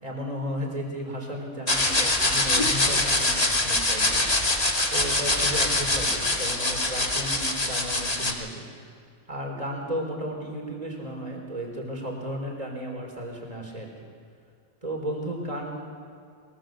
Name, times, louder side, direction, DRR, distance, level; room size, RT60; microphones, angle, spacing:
voice 1, 0.0-8.9 9.3-14.1 14.8-15.9, equal, 10° right, 1 dB, 3.9 m, -34 dB
sound 1, 1.7-8.3, left 2 dB, 25° left, 0.7 m, -24 dB
23.0 x 20.5 x 7.8 m, 2.3 s
omnidirectional pair, 4.2 m